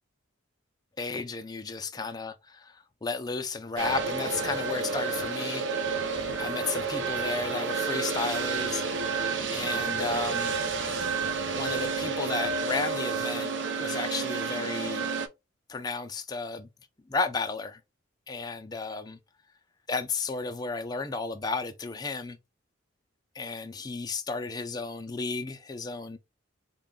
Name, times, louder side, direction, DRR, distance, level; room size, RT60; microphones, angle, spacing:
voice 1, 1.0-6.1 6.4-9.3 9.5-10.5 11.5-13.5 13.8-15.1 15.7-16.7 17.1-17.8 18.3-19.2 19.9-22.4 23.3-26.2, left 4 dB, 20° left, 0.4 m, -33 dB
sound 1, 3.8-15.3, right 4 dB, 60° right, 0.6 m, -30 dB
4.1 x 2.2 x 3.6 m
head